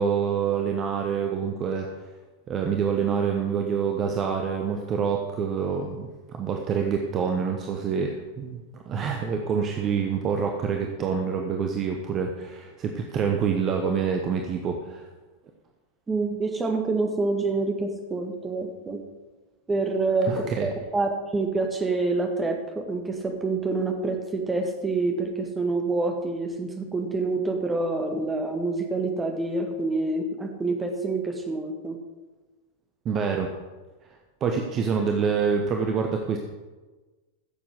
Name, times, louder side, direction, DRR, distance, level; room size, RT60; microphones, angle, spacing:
voice 1, 0.0-1.9 2.5-15.0 20.3-20.7 33.0-33.5 34.4-36.4, right 6 dB, 30° right, 3 dB, 1.0 m, -26 dB
voice 2, 16.1-19.0 19.7-32.0, right 3 dB, 15° right, 3 dB, 1.7 m, -27 dB
15.0 x 7.3 x 4.9 m, 1.2 s
figure-of-eight pair, 90°, 0 cm